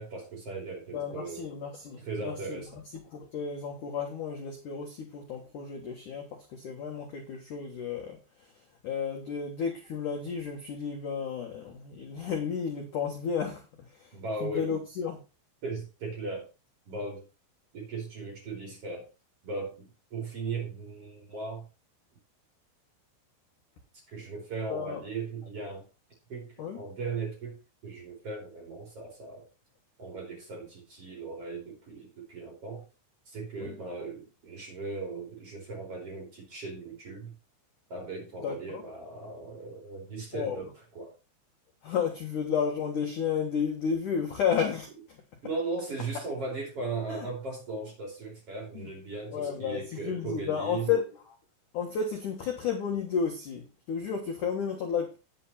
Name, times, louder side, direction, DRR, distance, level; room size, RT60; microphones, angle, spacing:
voice 1, 0.0-1.4 2.0-2.7 14.1-14.7 15.6-16.5 16.9-17.2 17.7-19.1 19.4-21.7 24.1-25.9 26.3-26.5 26.7-27.6 27.8-29.5 30.0-32.8 33.3-37.3 37.9-41.1 45.4-50.9, right 3 dB, 35° right, 3.1 m, -37 dB
voice 2, 0.9-2.6 3.1-8.5 8.8-13.6 13.9-15.2 24.7-25.0 26.6-26.8 33.6-33.7 38.4-38.8 40.3-40.7 41.8-45.2 47.1-47.2 48.7-48.9 49.3-51.1 51.7-55.2, left 6 dB, 70° left, 1.9 m, -32 dB
9.3 x 7.9 x 4.2 m
omnidirectional pair, 5.9 m